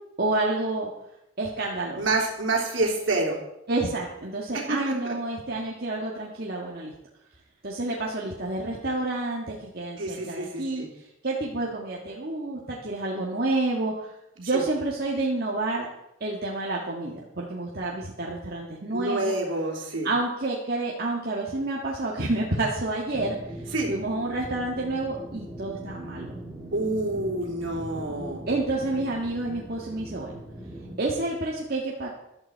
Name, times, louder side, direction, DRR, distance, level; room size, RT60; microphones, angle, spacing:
voice 1, 0.2-0.9 1.4-2.1 3.7-6.9 7.6-10.9 11.2-14.1 14.4-15.9 16.2-19.3 20.0-23.4 23.9-26.4 28.5-30.3 31.0-32.1, right 2 dB, 50° right, -3 dB, 1.7 m, -29 dB
voice 2, 2.0-3.4 4.5-5.1 10.0-10.9 14.5-14.6 18.9-20.1 23.7-23.9 26.7-28.4, right 2 dB, 70° right, 0 dB, 3.4 m, -28 dB
sound 1, 23.1-30.9, right 1 dB, 10° right, 3.1 m, -40 dB
14.5 x 12.0 x 4.6 m, 0.84 s
head